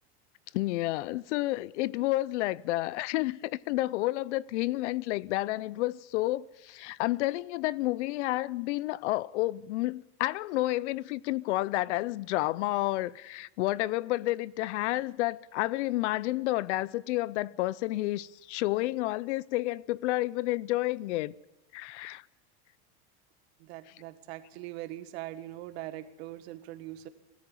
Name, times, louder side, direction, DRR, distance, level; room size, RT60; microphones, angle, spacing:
voice 1, 0.5-21.3 21.7-22.2, left 18 dB, 85° left, 0.7 m, -30 dB
voice 2, 23.6-27.1, right 15 dB, 65° right, 1.7 m, -41 dB
19.5 x 13.5 x 10.0 m
supercardioid pair, 170°, 34 cm